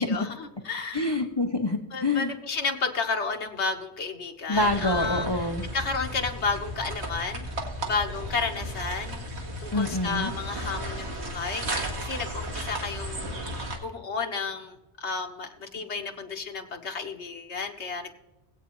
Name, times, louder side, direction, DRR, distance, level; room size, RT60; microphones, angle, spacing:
voice 1, 0.0-1.2 1.9-5.3 5.7-7.4 7.8-9.2 9.6-13.4 13.8-18.1, left 4 dB, 85° left, 4 dB, 1.5 m, -32 dB
voice 2, 0.9-2.3 4.5-5.6 9.7-10.3, left 2 dB, 25° left, 4 dB, 0.7 m, -26 dB
sound 1, 4.5-13.8, right 1 dB, 80° right, 1.9 m, -34 dB
20.0 x 8.3 x 3.1 m, 0.94 s
omnidirectional pair, 1.1 m